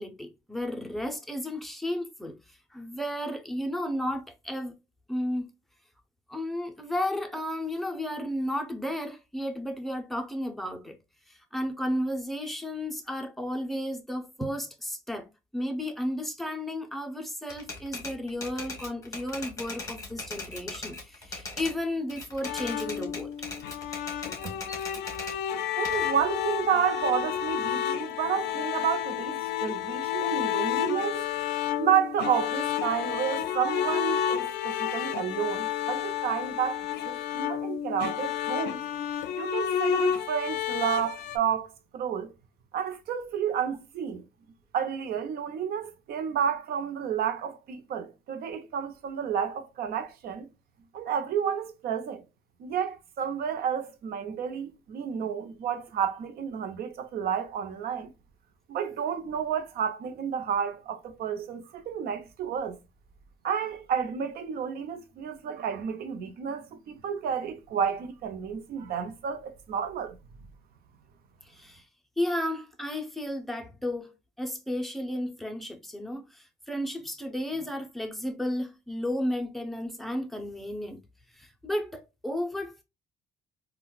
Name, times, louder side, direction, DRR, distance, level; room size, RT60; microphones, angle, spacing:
voice 1, 0.0-4.8 5.1-5.5 6.3-11.0 11.3-23.3 71.4-71.9 72.2-81.0 81.3-82.8, left 1 dB, ahead, 0.6 m, -33 dB
Typewriter, 17.5-21.8 22.1-25.4 25.8-27.5, left 3 dB, 20° left, 1.2 m, -40 dB
sound 1, 22.4-41.4, left 10 dB, 75° left, 0.4 m, -31 dB
voice 2, 25.8-31.2 31.8-38.8 39.4-42.3 42.7-44.2 44.7-50.5 50.9-52.2 52.6-58.1 58.7-62.8 63.4-70.2, right 8 dB, 65° right, 0.7 m, -31 dB
3.8 x 2.3 x 2.3 m
cardioid pair, 110°, 17 cm